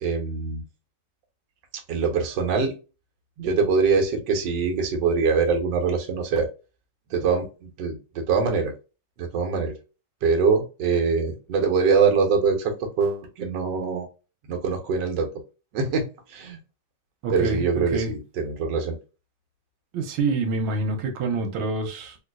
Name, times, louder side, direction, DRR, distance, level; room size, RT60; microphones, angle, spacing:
voice 1, 0.0-0.6 1.9-2.7 3.4-6.5 7.1-8.7 9.2-9.7 10.2-14.1 14.5-15.3 15.7-16.6 17.3-19.0, right 5 dB, 65° right, 1.4 m, -23 dB
voice 2, 17.2-18.1 19.9-22.2, right 3 dB, 90° right, 1.5 m, -27 dB
3.8 x 2.5 x 2.3 m
omnidirectional pair, 2.2 m